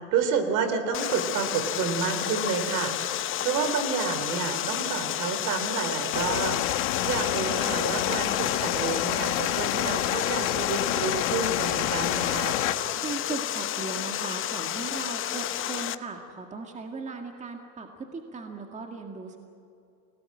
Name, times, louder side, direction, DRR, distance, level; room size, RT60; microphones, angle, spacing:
voice 1, 0.1-6.6 7.0-12.6, right 6 dB, 50° right, 9 dB, 3.5 m, -29 dB
Water, 0.9-16.0, left 12 dB, 35° left, 0.9 m, -31 dB
sound 1, 6.1-12.7, left 13 dB, 75° left, 1.7 m, -28 dB
voice 2, 13.0-19.4, right 4 dB, 20° right, 3 dB, 2.0 m, -37 dB
29.0 x 18.5 x 8.6 m, 2.7 s
supercardioid pair, 125°, 38 cm